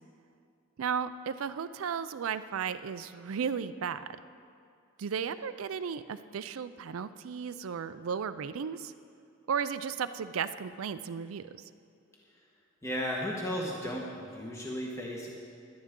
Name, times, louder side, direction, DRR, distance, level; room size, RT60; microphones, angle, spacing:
voice 1, 0.8-4.0 5.0-8.9 9.5-11.6, right 7 dB, 85° right, 12 dB, 0.4 m, -34 dB
voice 2, 12.8-15.3, equal, 15° left, -3 dB, 1.3 m, -35 dB
17.5 x 11.5 x 3.7 m, 2.4 s
head